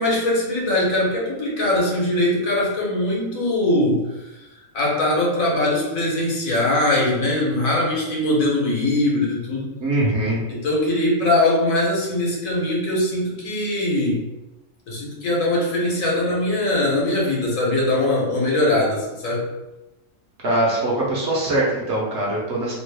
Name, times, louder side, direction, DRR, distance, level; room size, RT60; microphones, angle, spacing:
voice 1, 0.0-4.0 4.7-9.7 10.5-14.2 14.9-19.5, left 1 dB, 70° left, -3 dB, 1.3 m, -21 dB
voice 2, 9.8-10.4 20.4-22.7, right 1 dB, 55° right, -4 dB, 1.0 m, -22 dB
2.9 x 2.5 x 3.3 m, 1.0 s
omnidirectional pair, 1.5 m